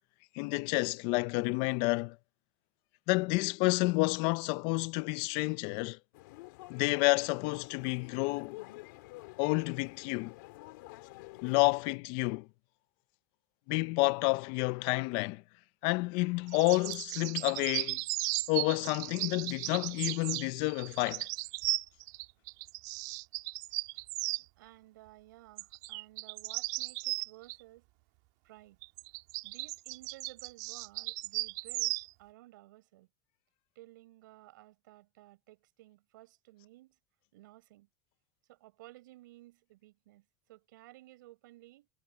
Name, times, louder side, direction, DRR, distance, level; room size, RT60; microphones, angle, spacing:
voice 1, 0.3-2.2 3.1-6.0 6.7-8.6 9.4-10.3 11.4-12.5 13.7-15.4 15.8-18.0 18.5-21.3, left 25 dB, 55° left, 0.5 m, -30 dB
sound 1, 6.1-12.0, left 22 dB, 75° left, 2.6 m, -50 dB
sound 2, 16.5-24.4 25.6-27.6 28.8-32.1, right 23 dB, 65° right, 1.8 m, -36 dB
voice 2, 24.4-27.9 28.4-28.8 29.4-33.1 33.7-37.0 37.3-37.9 38.5-41.9, right 17 dB, 85° right, 6.0 m, -56 dB
supercardioid pair, 145°, 10 cm